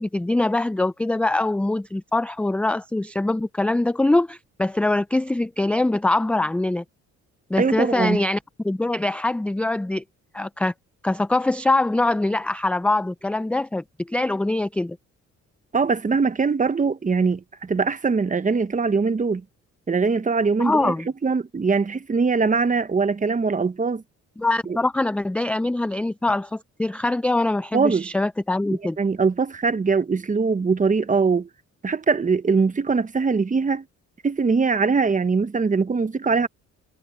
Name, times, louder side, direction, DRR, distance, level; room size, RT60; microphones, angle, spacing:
voice 1, 0.0-6.8 7.5-8.4 8.6-10.0 10.3-10.7 11.0-15.0 20.6-21.1 24.4-29.0, left 2 dB, 5° left, 0.3 m, -23 dB
voice 2, 7.6-8.2 15.7-19.4 19.9-20.9 21.2-24.0 24.7-24.8 27.7-28.1 29.0-31.5 31.8-33.8 34.2-36.5, right 4 dB, 25° right, 1.0 m, -22 dB
cardioid pair, 90°, 30 cm